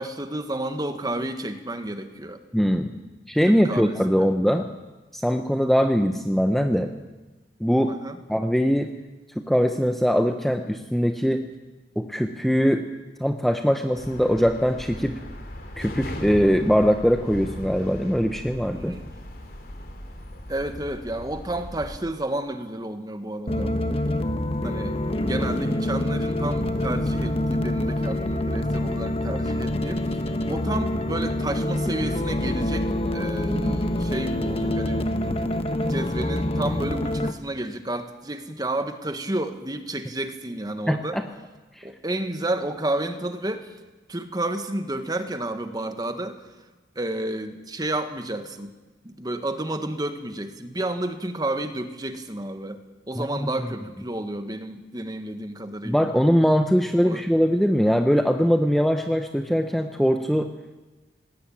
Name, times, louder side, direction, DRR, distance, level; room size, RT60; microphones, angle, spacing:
voice 1, 0.0-2.4 3.5-4.3 7.9-8.2 18.8-19.1 20.5-23.7 24.6-35.1 35.8-41.2 41.8-43.8 44.1-46.4 46.9-48.7 49.0-56.1 57.0-57.3, right 1 dB, 20° right, 8 dB, 1.6 m, -31 dB
voice 2, 2.5-2.9 3.3-4.7 5.1-6.9 7.6-7.9 8.3-8.9 9.5-11.5 12.0-12.8 13.2-15.2 15.8-18.9 40.9-41.2 41.8-41.9 53.2-53.3 55.8-60.5, equal, ahead, 5 dB, 0.9 m, -21 dB
sound 1, 13.9-22.0, left 1 dB, 55° left, 3.1 m, -38 dB
sound 2, 23.5-37.3, left 1 dB, 35° left, 1.2 m, -26 dB
19.5 x 18.0 x 8.7 m, 1.2 s
head